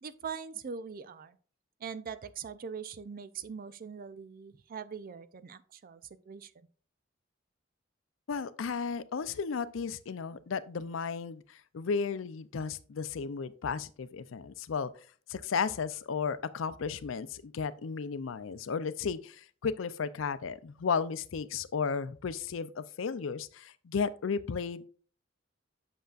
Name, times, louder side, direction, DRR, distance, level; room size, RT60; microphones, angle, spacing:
voice 1, 0.0-1.4 1.8-6.7, right 6 dB, 45° right, 0.4 m, -42 dB
voice 2, 8.3-14.9 15.3-24.9, left 5 dB, 80° left, 0.5 m, -34 dB
7.9 x 6.3 x 2.4 m
head